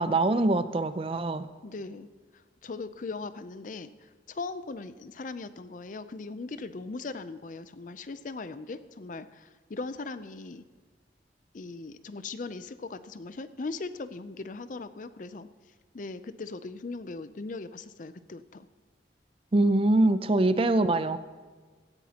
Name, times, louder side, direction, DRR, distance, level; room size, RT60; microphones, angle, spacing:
voice 1, 0.0-1.5 19.5-21.2, right 2 dB, 30° right, 12 dB, 0.5 m, -24 dB
voice 2, 1.6-2.1 2.6-3.9 4.3-10.6 11.5-15.5 15.9-18.7, left 3 dB, 45° left, 13 dB, 0.5 m, -39 dB
16.5 x 13.5 x 2.9 m, 1.4 s
head